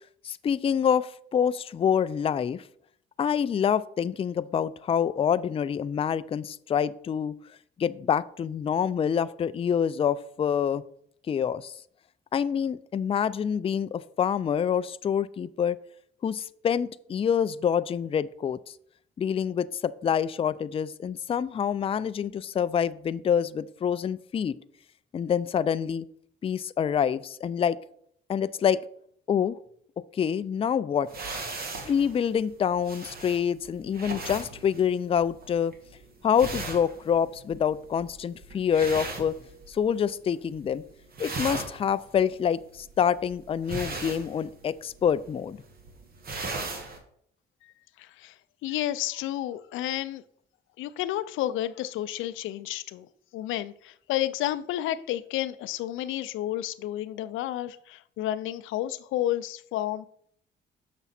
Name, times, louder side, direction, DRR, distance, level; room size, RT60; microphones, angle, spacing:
voice 1, 0.2-2.6 3.2-7.4 7.8-10.8 11.3-11.7 12.3-15.8 16.2-18.6 19.2-24.6 25.1-26.1 26.4-27.8 28.3-28.8 29.3-29.6 30.1-31.1 31.8-35.7 36.2-39.4 39.7-40.8 41.2-45.6, left 8 dB, 30° left, 14 dB, 0.3 m, -26 dB
sound 1, 31.1-40.0 40.3-40.8 41.0-47.0, right 3 dB, 50° right, 1.7 m, -38 dB
voice 2, 47.6-48.3 48.6-50.2 50.8-53.1 53.3-60.1, left 13 dB, 90° left, 14 dB, 0.4 m, -31 dB
6.6 x 6.0 x 4.2 m, 0.65 s
cardioid pair, 90°, 20 cm